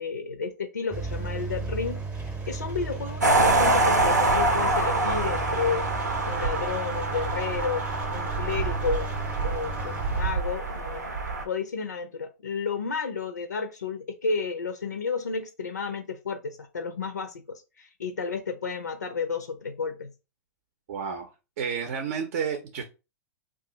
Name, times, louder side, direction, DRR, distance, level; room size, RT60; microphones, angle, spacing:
voice 1, 0.0-5.9 6.2-9.1 9.4-11.1 11.4-20.1, left 5 dB, 90° left, 7 dB, 0.4 m, -32 dB
Engine, 0.9-10.3, right 3 dB, 15° right, 0.7 m, -35 dB
sound 1, 3.2-11.4, right 2 dB, 90° right, 0.8 m, -26 dB
sound 2, 3.9-5.7, left 5 dB, 15° left, 0.3 m, -32 dB
voice 2, 20.9-21.3 21.6-22.8, right 6 dB, 55° right, 5 dB, 0.6 m, -30 dB
2.4 x 2.4 x 3.8 m, 0.29 s
hypercardioid pair, 105°, 9 cm